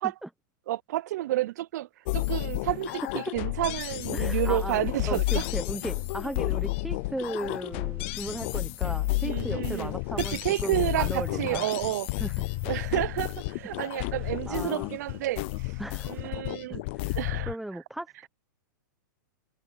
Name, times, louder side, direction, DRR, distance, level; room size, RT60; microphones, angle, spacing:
voice 1, 0.7-5.4 9.2-9.9 10.2-12.1 12.7-15.8 16.1-16.8 17.2-17.5, right 15 dB, 55° right, 0.6 m, -30 dB
sound 1, 2.1-17.5, left 22 dB, 35° left, 0.5 m, -31 dB
sound 2, 3.7-16.3, right 11 dB, 20° right, 3.7 m, -55 dB
voice 2, 4.1-4.8 5.1-11.7 12.2-12.3 14.2-14.9 15.8-18.3, right 1 dB, ahead, 1.1 m, -37 dB
supercardioid pair, 160°, 11 cm